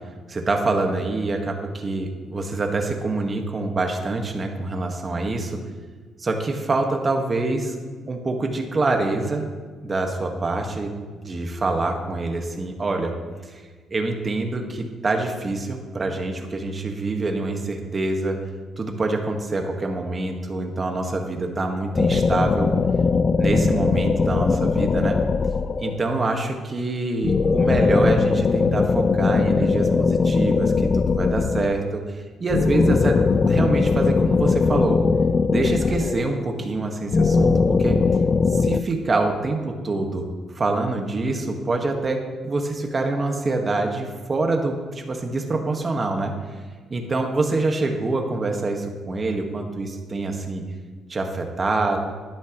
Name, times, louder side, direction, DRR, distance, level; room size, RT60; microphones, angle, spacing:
voice 1, 0.3-5.6 6.2-7.8 8.1-9.5 9.8-10.9 11.2-13.1 13.9-18.4 18.8-22.7 23.4-25.2 25.8-33.2 33.5-35.0 35.5-37.5 37.8-38.0 38.5-40.3 40.5-46.3 46.9-50.6 51.1-52.0, right 2 dB, 35° right, 3 dB, 1.6 m, -25 dB
sound 1, 21.9-26.1 27.2-31.9 32.5-36.5 37.1-38.8, left 4 dB, 40° left, 0.4 m, -20 dB
12.5 x 11.0 x 3.1 m, 1.5 s
cardioid pair, 90°, 0 cm